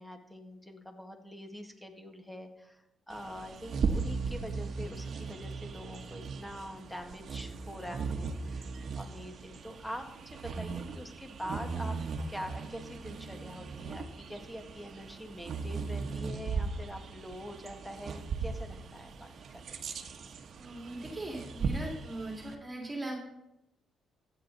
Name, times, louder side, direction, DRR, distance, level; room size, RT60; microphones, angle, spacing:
voice 1, 0.0-8.7 9.0-12.0 12.3-19.8, equal, 5° left, 5 dB, 1.8 m, -44 dB
Bird vocalization bird call bird song, 3.1-22.6, right 4 dB, 55° right, 1.2 m, -38 dB
voice 2, 20.6-23.2, right 1 dB, 20° right, 0 dB, 3.0 m, -39 dB
15.0 x 9.0 x 4.1 m, 0.86 s
cardioid pair, 90°, 0 cm